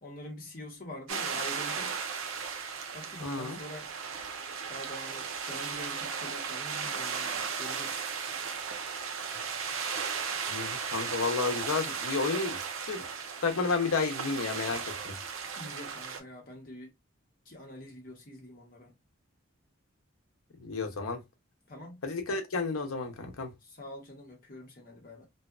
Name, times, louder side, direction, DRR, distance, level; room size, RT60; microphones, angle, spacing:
voice 1, 0.0-2.0 2.9-3.9 4.7-8.0 15.6-16.9 17.4-18.9 21.7-22.0 23.6-25.3, left 1 dB, 45° left, 1.0 m, -45 dB
sound 1, 1.1-16.2, right 6 dB, 75° right, 0.5 m, -36 dB
voice 2, 3.2-3.6 10.5-12.6 12.9-13.1 13.4-15.1 20.6-21.2 22.0-23.5, left 4 dB, 90° left, 0.7 m, -31 dB
2.7 x 2.2 x 2.4 m
head